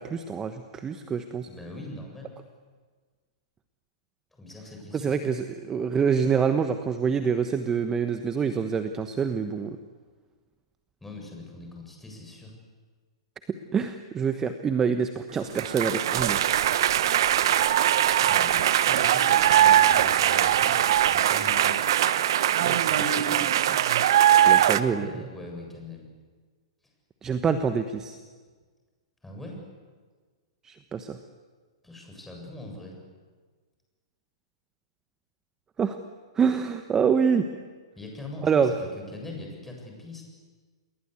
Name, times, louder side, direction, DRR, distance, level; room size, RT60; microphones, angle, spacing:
voice 1, 0.0-1.5 4.9-9.8 13.5-16.5 22.6-22.9 24.4-25.3 27.2-28.2 30.6-31.2 35.8-36.0 36.4-37.5 38.4-38.7, right 6 dB, 20° right, 9 dB, 1.2 m, -26 dB
voice 2, 1.5-2.4 4.3-5.1 11.0-12.5 18.2-18.6 18.8-20.8 21.1-21.9 22.9-23.5 24.6-26.1 29.2-29.6 31.8-33.0 38.0-40.2, left 1 dB, 5° left, 1 dB, 7.7 m, -40 dB
sound 1, 15.6-24.8, right 11 dB, 55° right, 1.1 m, -21 dB
29.0 x 21.5 x 8.3 m, 1.5 s
figure-of-eight pair, 110°, 3 cm